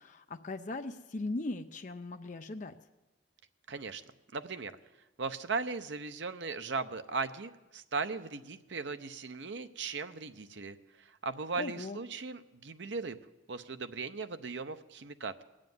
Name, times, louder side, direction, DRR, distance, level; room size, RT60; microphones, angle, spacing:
voice 1, 0.0-2.8 11.6-12.0, left 2 dB, 40° left, 6 dB, 0.5 m, -39 dB
voice 2, 3.7-4.0 4.3-4.7 5.2-13.2 13.5-15.4, right 4 dB, 70° right, 10 dB, 0.7 m, -38 dB
19.5 x 7.5 x 9.3 m, 1.1 s
head